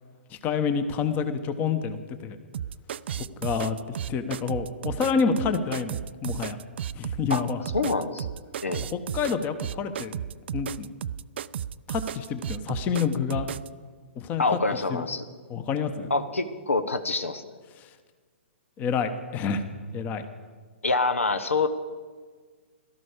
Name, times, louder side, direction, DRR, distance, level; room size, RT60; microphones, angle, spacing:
voice 1, 0.4-2.4 3.4-3.8 4.1-6.6 6.9-7.6 8.8-10.2 10.5-10.9 11.9-13.5 14.2-14.4 14.9-15.1 15.5-16.1 17.8-17.9 18.8-19.6 19.9-20.3, left 6 dB, 25° left, 10 dB, 1.1 m, -28 dB
sound 1, 2.5-13.7, right 9 dB, 60° right, 0.4 m, -34 dB
voice 2, 7.7-8.3 8.6-8.8 14.4-15.2 16.1-17.5 20.8-21.7, left 3 dB, 85° left, 10 dB, 1.1 m, -26 dB
17.0 x 13.0 x 5.1 m, 1.5 s
figure-of-eight pair, 125°, 7 cm